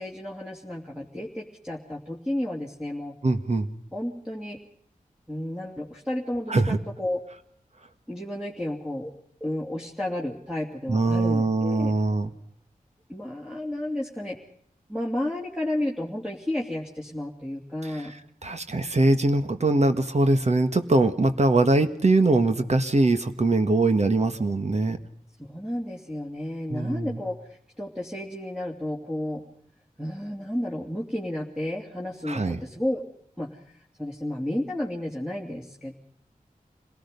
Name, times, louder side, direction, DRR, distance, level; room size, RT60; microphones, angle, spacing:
voice 1, 0.0-3.2 3.9-4.6 5.3-7.2 8.1-9.1 9.4-11.9 13.1-14.4 14.9-18.1 25.5-29.4 30.0-33.0 33.4-35.9, left 1 dB, 5° right, -2 dB, 2.8 m, -32 dB
voice 2, 3.2-3.7 6.5-6.8 10.9-12.3 18.4-25.0 26.7-27.2 32.3-32.6, right 2 dB, 50° right, 8 dB, 1.7 m, -22 dB
27.0 x 18.5 x 5.4 m, 0.66 s
wide cardioid pair, 80°, 14 cm